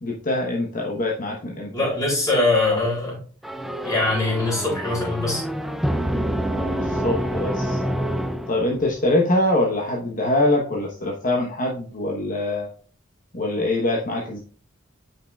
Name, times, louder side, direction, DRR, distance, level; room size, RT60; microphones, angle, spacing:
voice 1, 0.0-1.9 6.5-7.8 8.5-12.7 13.3-14.4, left 1 dB, 40° left, -1 dB, 1.1 m, -24 dB
voice 2, 1.7-3.2 3.8-5.4, left 2 dB, 15° left, -5 dB, 3.7 m, -22 dB
sound 1, 3.4-9.0, equal, ahead, 0.4 m, -27 dB
8.6 x 5.7 x 2.3 m, 0.41 s
head